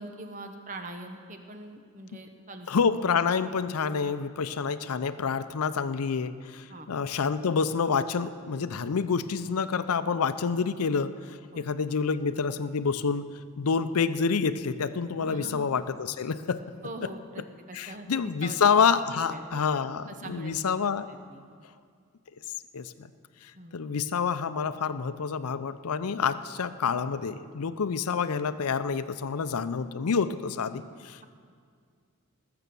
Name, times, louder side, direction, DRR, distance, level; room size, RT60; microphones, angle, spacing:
voice 1, 0.0-2.7 6.7-6.9 11.5-11.7 15.2-15.7 16.8-18.6 19.1-19.7 20.1-20.6 21.1-21.4 23.5-23.8, right 2 dB, 35° right, 6 dB, 0.9 m, -42 dB
voice 2, 2.7-16.6 17.7-21.1 22.7-23.1 23.4-31.2, left 5 dB, 85° left, 12 dB, 0.5 m, -28 dB
19.5 x 6.9 x 6.9 m, 2.1 s
head